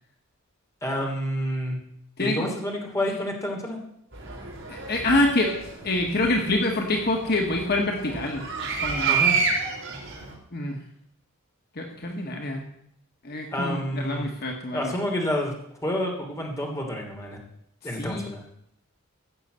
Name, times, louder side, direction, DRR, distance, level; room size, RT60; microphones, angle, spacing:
voice 1, 0.8-1.8 2.2-3.8 9.1-9.4 13.5-14.3 14.7-15.5 15.8-17.4 17.8-18.4, equal, 15° left, 1 dB, 3.1 m, -29 dB
voice 2, 2.2-2.5 4.7-5.5 5.8-8.5 8.8-9.1 10.5-10.8 11.7-12.7 13.2-15.0 18.0-18.3, left 2 dB, 45° left, 2 dB, 1.6 m, -26 dB
sound 1, 4.1-10.3, right 5 dB, 60° right, 4.3 m, -29 dB
15.5 x 6.9 x 8.1 m, 0.73 s
head